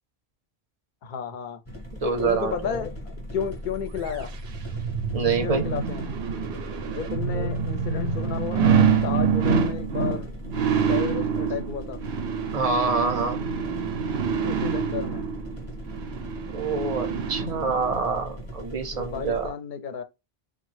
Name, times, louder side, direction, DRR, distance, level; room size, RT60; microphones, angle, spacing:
voice 1, 1.0-1.6 2.0-4.3 5.4-6.1 6.8-10.3 10.9-12.0 14.4-15.3 18.9-20.0, left 7 dB, 60° left, 0.6 m, -33 dB
sound 1, 1.6-19.5, equal, 15° left, 0.8 m, -39 dB
voice 2, 2.0-2.8 5.1-5.7 7.3-7.5 12.5-13.4 16.5-19.5, right 4 dB, 45° right, 0.6 m, -26 dB
sound 2, 4.1-18.0 18.4-18.5, right 6 dB, 85° right, 0.9 m, -26 dB
3.0 x 2.1 x 3.1 m
omnidirectional pair, 1.0 m